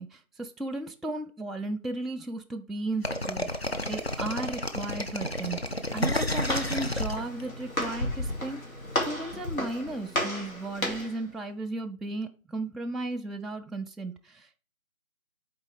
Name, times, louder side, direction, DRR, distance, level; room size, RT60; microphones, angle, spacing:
voice 1, 0.0-8.6 9.0-14.6, right 2 dB, ahead, 2 dB, 0.4 m, -35 dB
sound 1, 3.0-7.8, left 1 dB, 45° left, 0.6 m, -30 dB
Walk footsteps, 5.8-11.2, left 1 dB, 70° left, 2.6 m, -33 dB
6.9 x 4.4 x 3.3 m, 0.37 s
figure-of-eight pair, 175°, 43 cm